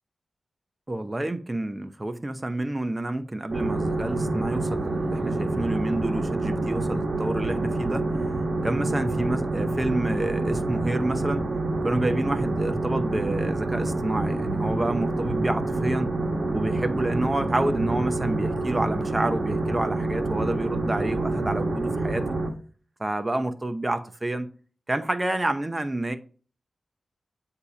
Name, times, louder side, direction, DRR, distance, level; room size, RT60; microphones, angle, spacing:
voice 1, 0.9-8.1 8.6-11.5 11.8-16.1 16.5-22.4 23.0-24.5 24.9-26.2, right 1 dB, 30° right, 0.7 m, -28 dB
sound 1, 3.5-22.5, right 2 dB, 60° right, 1.2 m, -27 dB
8.0 x 2.8 x 4.9 m
cardioid pair, 45°, 0 cm